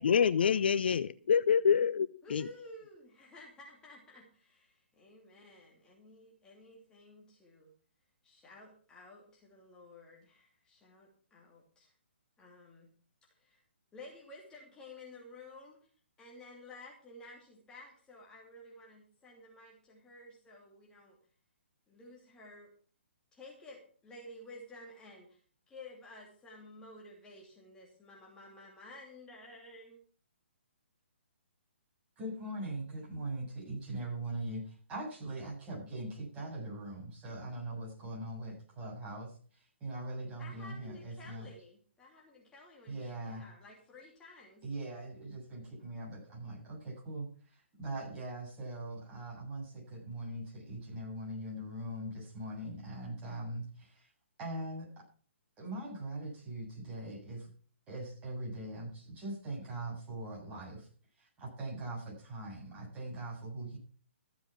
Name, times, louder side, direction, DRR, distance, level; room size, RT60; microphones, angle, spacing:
voice 1, 0.0-2.4, left 7 dB, 55° left, 16 dB, 0.5 m, -27 dB
voice 2, 2.2-7.7 8.2-11.9 12.4-13.0 13.3-13.6 13.9-15.9 16.2-21.2 21.9-22.7 23.3-25.4 25.7-30.0 40.4-44.7, left 1 dB, 10° left, -2 dB, 2.8 m, -53 dB
voice 3, 32.2-41.5 42.9-43.4 44.6-54.1 54.4-55.0 55.6-57.5 57.9-60.9 61.2-63.8, right 1 dB, 20° right, -3 dB, 7.5 m, -41 dB
14.5 x 7.9 x 6.0 m, 0.43 s
figure-of-eight pair, 130°, 7 cm